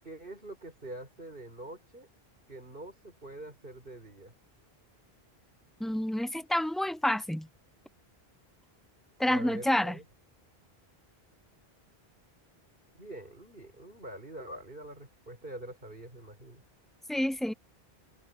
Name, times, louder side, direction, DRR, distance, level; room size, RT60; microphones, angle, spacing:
voice 1, 0.0-2.1 2.5-4.3 9.2-10.0 12.9-16.6, right 1 dB, 60° right, 6.0 m, -45 dB
voice 2, 5.8-7.5 9.2-10.0 17.1-17.5, left 1 dB, ahead, 0.3 m, -28 dB
omnidirectional pair, 1.1 m